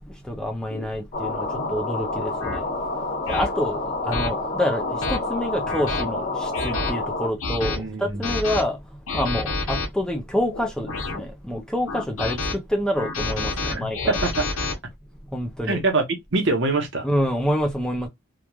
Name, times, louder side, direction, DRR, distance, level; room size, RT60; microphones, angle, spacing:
voice 1, 0.3-1.5 1.7-2.6 3.3-3.8 4.1-4.8 5.1-8.8 9.1-12.4 12.7-14.2 15.3-15.8 17.0-18.1, equal, 5° left, 0.4 m, -27 dB
sound 1, 0.7-0.9 1.5-1.7 2.4-2.6 3.3-3.5 4.1-4.3 4.8-5.2 5.7-6.0 6.5-6.9 7.4-7.8 8.2-8.6 9.1-9.9 10.5-11.2 11.9-12.5 13.0-14.7, left 3 dB, 80° left, 0.9 m, -28 dB
sound 2, 1.1-7.3, left 2 dB, 35° left, 0.8 m, -28 dB
voice 2, 7.6-8.3 13.6-14.5 15.6-16.1 16.3-17.1, right 3 dB, 55° right, 0.8 m, -24 dB
3.0 x 2.3 x 2.2 m
head